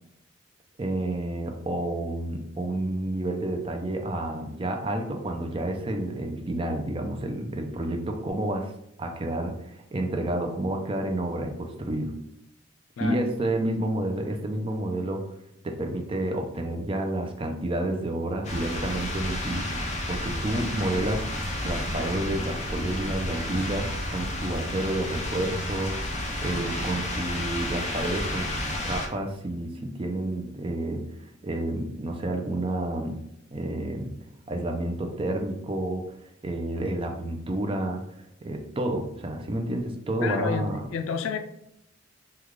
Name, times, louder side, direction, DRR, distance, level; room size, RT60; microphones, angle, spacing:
voice 1, 0.8-8.7 9.0-12.1 13.0-15.2 15.6-21.2 21.6-28.5 28.8-31.0 31.4-33.2 33.5-34.1 34.5-36.1 36.4-38.1 38.4-40.8, right 1 dB, 25° right, 0.4 m, -30 dB
sound 1, 18.4-29.1, left 1 dB, 35° left, 0.5 m, -31 dB
voice 2, 40.2-41.4, left 5 dB, 85° left, 0.4 m, -30 dB
3.1 x 2.3 x 3.6 m
head